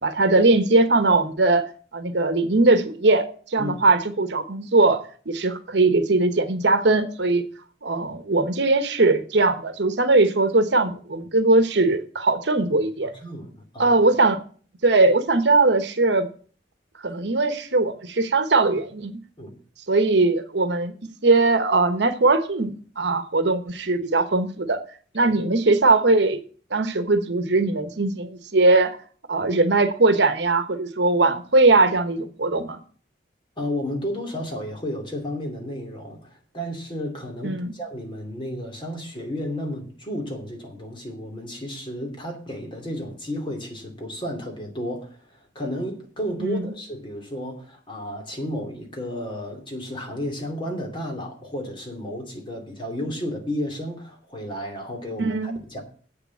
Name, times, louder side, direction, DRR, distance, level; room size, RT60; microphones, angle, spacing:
voice 1, 0.0-1.7 1.9-7.4 7.8-13.1 13.8-14.4 14.8-16.3 17.0-19.2 19.9-20.9 21.2-24.8 25.1-26.4 26.7-29.0 29.3-32.8 37.4-37.7 46.4-46.7 55.2-55.6, right 3 dB, 65° right, 1.1 m, -20 dB
voice 2, 13.0-14.0 19.4-19.5 33.6-55.8, equal, 25° left, 2.6 m, -32 dB
8.2 x 6.8 x 8.5 m
head